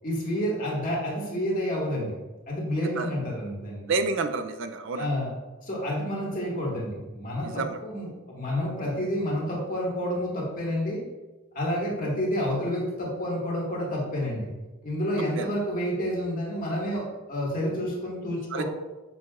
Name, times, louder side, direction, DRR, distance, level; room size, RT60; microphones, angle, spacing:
voice 1, 0.0-3.9 5.0-5.3 5.6-11.0 11.5-14.5 14.8-18.6, equal, 40° left, -4 dB, 1.8 m, -29 dB
voice 2, 3.9-5.1 7.4-7.8 15.4-15.5 18.5-18.6, right 4 dB, 60° right, 8 dB, 0.4 m, -29 dB
7.3 x 6.0 x 2.4 m, 1.2 s
head